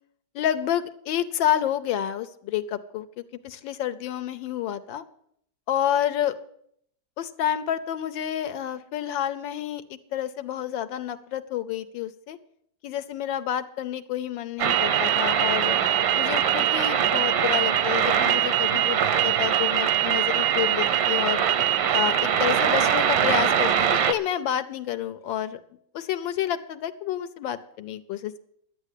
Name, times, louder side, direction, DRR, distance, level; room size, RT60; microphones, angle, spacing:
voice 1, 0.3-5.0 5.7-6.3 7.2-12.4 12.8-15.8 16.1-21.4 21.9-25.6 25.9-28.4, left 10 dB, 80° left, 10 dB, 1.5 m, -29 dB
sound 1, 14.6-24.1, right 9 dB, 90° right, 1.7 m, -22 dB
12.0 x 8.3 x 8.3 m, 0.68 s
omnidirectional pair, 2.0 m